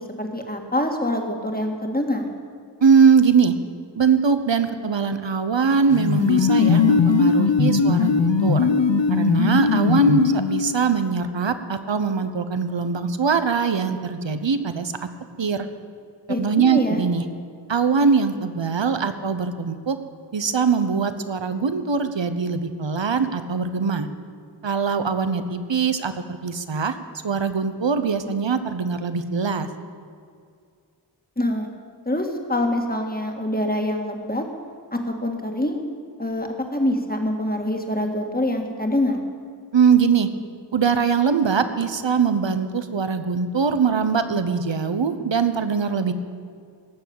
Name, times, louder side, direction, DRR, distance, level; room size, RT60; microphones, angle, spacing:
voice 1, 0.0-2.3 16.3-17.0 31.4-31.7 32.1-34.4 34.9-35.8 36.2-39.2, left 1 dB, 20° left, 3 dB, 2.0 m, -25 dB
voice 2, 2.8-3.5 4.0-8.7 9.1-14.9 15.4-15.7 16.4-17.2 17.7-20.0 20.3-24.1 24.6-26.1 26.4-27.0 27.2-29.7 39.7-40.3 40.7-46.1, right 5 dB, 75° right, 10 dB, 1.0 m, -21 dB
sound 1, 5.9-10.8, left 4 dB, 70° left, 0.8 m, -19 dB
18.0 x 7.1 x 8.9 m, 2.2 s
wide cardioid pair, 50°, 45 cm